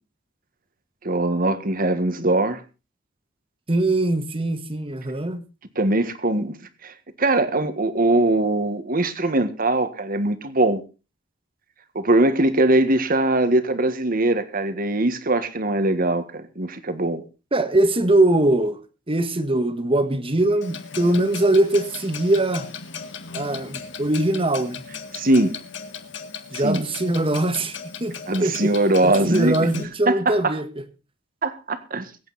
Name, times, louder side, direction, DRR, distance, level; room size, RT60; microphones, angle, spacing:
voice 1, 1.0-2.6 5.7-6.6 6.8-10.8 11.9-17.2 25.1-25.5 26.6-26.8 28.3-29.7 30.1-30.6 31.4-32.1, right 2 dB, 50° right, 1.6 m, -21 dB
voice 2, 3.7-5.4 17.5-18.8 19.1-22.7 23.3-24.8 26.5-28.7 29.0-30.7, right 1 dB, 30° right, 1.6 m, -22 dB
Clock, 20.6-29.8, left 6 dB, 70° left, 1.9 m, -37 dB
22.5 x 8.7 x 4.1 m
head